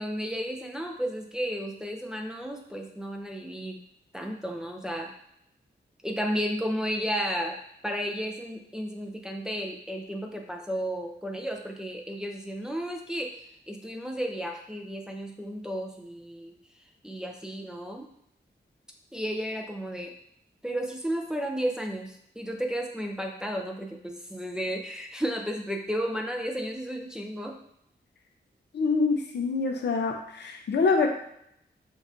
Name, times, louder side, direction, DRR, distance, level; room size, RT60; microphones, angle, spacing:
voice 1, 0.0-3.8 4.1-5.1 6.0-16.5 17.0-18.1 19.1-20.2 20.6-27.6, equal, 5° right, 1 dB, 0.5 m, -33 dB
voice 2, 28.7-31.1, left 4 dB, 80° left, 3 dB, 0.6 m, -25 dB
6.0 x 2.5 x 2.6 m, 0.74 s
wide cardioid pair, 125°, 18 cm